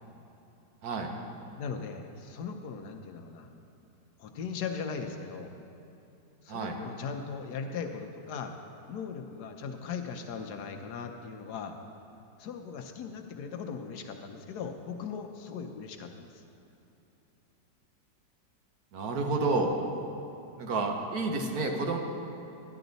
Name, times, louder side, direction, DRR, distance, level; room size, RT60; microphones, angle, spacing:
voice 1, 1.5-3.5 4.2-5.5 6.4-8.5 8.9-11.8 12.4-16.4, left 6 dB, 70° left, 5 dB, 1.2 m, -38 dB
voice 2, 18.9-19.7 20.6-22.0, right 3 dB, 60° right, 2 dB, 1.4 m, -30 dB
12.5 x 10.0 x 4.0 m, 2.9 s
omnidirectional pair, 1.9 m